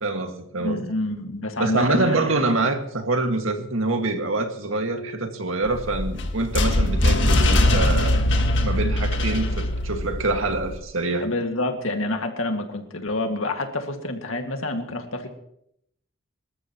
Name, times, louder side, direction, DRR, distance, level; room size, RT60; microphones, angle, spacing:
voice 1, 0.0-0.8 1.6-8.2 8.6-11.3, right 2 dB, 85° right, 2.0 m, -25 dB
voice 2, 0.6-2.5 11.2-15.3, left 2 dB, 85° left, 2.1 m, -28 dB
sound 1, 5.6-10.8, left 1 dB, 65° left, 1.7 m, -21 dB
25.5 x 13.5 x 3.1 m
head